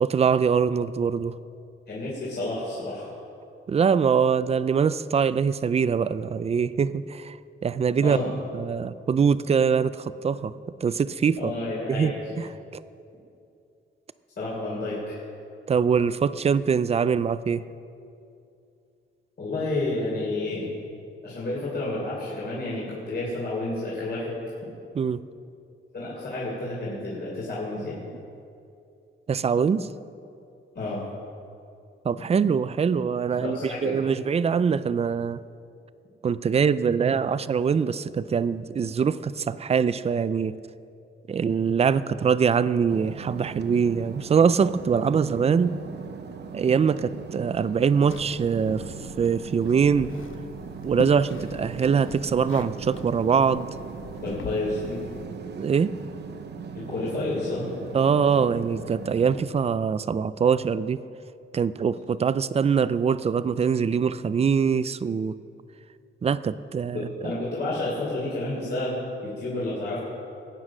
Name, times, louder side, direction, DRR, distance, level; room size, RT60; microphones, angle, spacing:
voice 1, 0.0-1.4 3.7-7.4 7.6-8.2 8.5-10.5 10.8-11.5 11.9-12.8 15.7-17.6 24.9-25.2 29.3-29.9 32.0-35.4 36.2-40.6 41.3-45.8 46.5-50.1 50.8-53.7 55.6-56.0 57.9-61.0 61.5-65.4 66.2-67.3, right 6 dB, 30° right, 15 dB, 0.4 m, -23 dB
voice 2, 1.9-3.1 8.0-8.3 11.4-12.2 14.4-15.2 19.4-20.7 21.2-24.4 25.9-28.0 30.7-31.0 33.4-33.9 54.2-55.0 56.7-57.7 66.9-70.0, left 2 dB, 55° left, -6 dB, 3.4 m, -30 dB
sound 1, 42.9-59.4, right 6 dB, 55° right, 0.8 m, -39 dB
sound 2, 48.1-55.3, left 6 dB, 75° left, 0.9 m, -42 dB
21.5 x 9.4 x 6.1 m, 2.6 s
wide cardioid pair, 175°, 21 cm